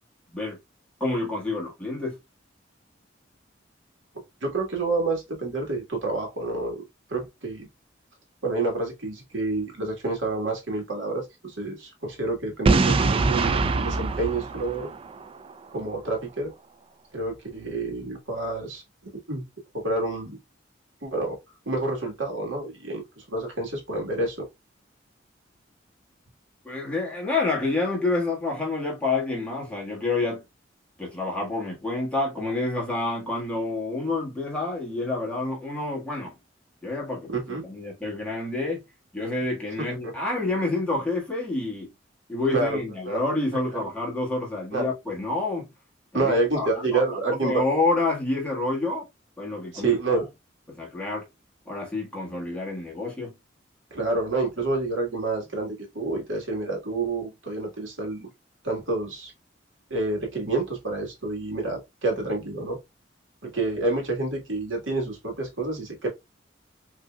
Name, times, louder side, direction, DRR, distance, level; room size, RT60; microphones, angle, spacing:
voice 1, 1.0-2.2 26.6-30.5 31.0-36.3 36.8-38.8 39.1-41.9 42.3-45.7 46.1-47.0 47.3-49.1 49.4-50.2 50.7-51.2 51.6-53.3, left 2 dB, 5° left, 1.5 m, -28 dB
voice 2, 4.4-6.8 7.1-7.7 8.4-14.9 15.7-16.5 17.1-18.8 19.3-19.4 19.7-20.4 21.0-21.4 21.6-24.5 37.3-37.6 40.0-40.1 42.5-42.8 43.0-43.2 43.5-43.8 44.7-44.9 46.1-47.6 49.7-50.3 53.9-58.3 58.6-59.3 59.9-62.8 63.4-66.1, right 2 dB, 90° right, 1.5 m, -28 dB
Boom, 12.7-15.5, right 3 dB, 30° right, 0.3 m, -23 dB
5.2 x 2.8 x 2.2 m
head